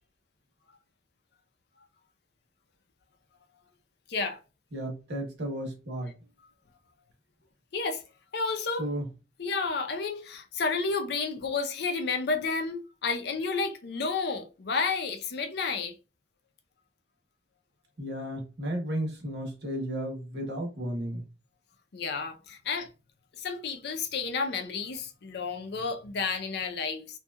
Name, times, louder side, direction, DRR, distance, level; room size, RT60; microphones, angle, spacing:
voice 1, 4.7-6.2 8.8-9.1 18.0-21.2, equal, 65° right, 0.9 m, -33 dB
voice 2, 8.3-8.8 9.4-15.9 21.9-22.9 23.4-27.1, left 4 dB, 60° left, 0.5 m, -31 dB
2.8 x 2.2 x 2.2 m
head